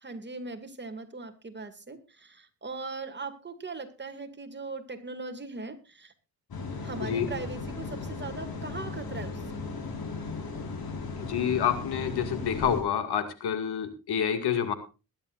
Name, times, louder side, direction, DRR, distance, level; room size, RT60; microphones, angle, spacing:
voice 1, 0.0-6.1 6.8-9.4, right 3 dB, 30° right, 7 dB, 2.3 m, -39 dB
sound 1, 6.5-12.8, left 4 dB, 70° left, 5.0 m, -36 dB
voice 2, 7.0-7.3 11.2-14.7, left 8 dB, 90° left, 9 dB, 2.2 m, -28 dB
21.0 x 11.0 x 2.5 m, 0.30 s
cardioid pair, 90°, 38 cm